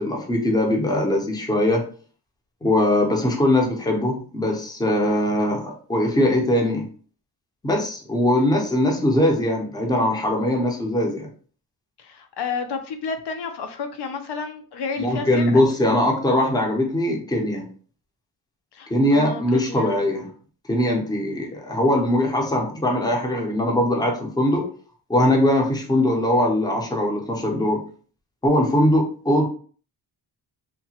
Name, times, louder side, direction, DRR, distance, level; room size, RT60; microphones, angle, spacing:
voice 1, 0.0-1.8 2.6-6.9 7.6-11.3 15.0-17.7 18.9-20.3 20.7-24.7 25.1-27.8 28.4-29.5, left 1 dB, 10° left, 0 dB, 0.6 m, -21 dB
voice 2, 12.0-15.7 18.7-20.0, left 5 dB, 70° left, 6 dB, 0.5 m, -31 dB
2.8 x 2.2 x 2.8 m, 0.43 s
wide cardioid pair, 125°, 41 cm